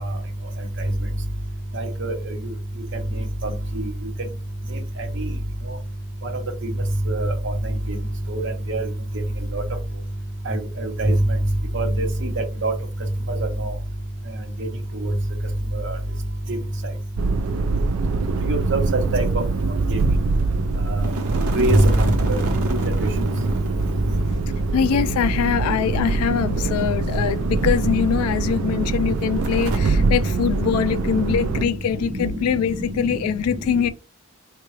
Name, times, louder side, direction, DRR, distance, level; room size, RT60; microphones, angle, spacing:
voice 1, 1.7-2.1 3.8-3.9 7.1-7.3 8.3-8.8 9.5-9.6 10.5-11.1 11.7-12.1 12.6-12.7 13.6-13.7 15.0-15.1 15.7-15.9 18.5-19.2 21.6-21.9 22.3-22.4 22.7-22.8 32.2-32.3, right 2 dB, 55° right, 0.8 m, -22 dB
sound 1, 17.1-31.7, right 3 dB, 70° right, 0.3 m, -24 dB
sound 2, 21.0-24.2 24.5-24.6 25.9-27.9 28.2-28.3 29.4-29.8, right 1 dB, 85° right, 0.8 m, -30 dB
voice 2, 24.7-33.9, left 7 dB, 90° left, 0.3 m, -23 dB
3.7 x 2.2 x 3.1 m
head